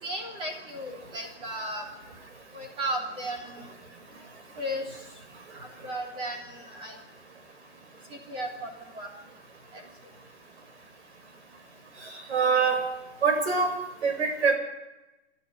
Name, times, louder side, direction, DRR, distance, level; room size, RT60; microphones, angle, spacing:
voice 1, 0.0-1.8 2.5-3.7 4.6-4.8 5.6-7.0 8.1-9.1 9.7-9.8, right 1 dB, 15° right, 2 dB, 3.3 m, -35 dB
voice 2, 12.3-12.8 13.2-13.7 14.0-14.5, right 5 dB, 70° right, 6 dB, 6.9 m, -23 dB
26.5 x 12.5 x 9.8 m, 1.0 s
hypercardioid pair, 170°, 35 cm